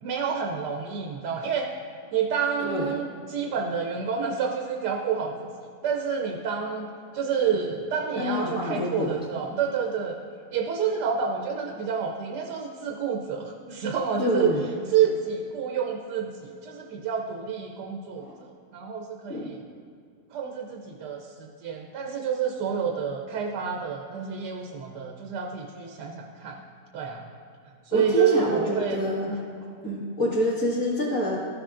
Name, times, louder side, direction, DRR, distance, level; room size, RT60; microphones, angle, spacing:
voice 1, 0.0-1.7 2.1-5.5 5.8-6.9 7.1-10.2 10.5-14.5 14.9-18.3 18.7-19.6 20.3-26.6 26.9-27.3 27.8-29.4, right 7 dB, 85° right, 1 dB, 1.3 m, -28 dB
voice 2, 2.6-2.9 8.2-9.1 14.2-14.6 18.2-18.3 19.3-19.5 27.9-29.3 29.8-31.4, left 1 dB, 5° right, -7 dB, 1.4 m, -27 dB
13.5 x 6.2 x 2.5 m, 2.4 s
omnidirectional pair, 1.7 m